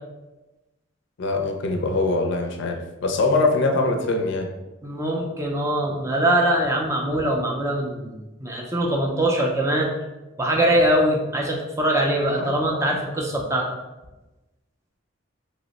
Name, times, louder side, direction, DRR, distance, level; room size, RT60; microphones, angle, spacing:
voice 1, 1.2-4.5 12.4-12.5, left 3 dB, 60° left, 3 dB, 0.4 m, -23 dB
voice 2, 4.8-9.9 10.4-13.6, right 1 dB, 15° right, -1 dB, 0.3 m, -22 dB
2.8 x 2.0 x 3.9 m, 1.1 s
head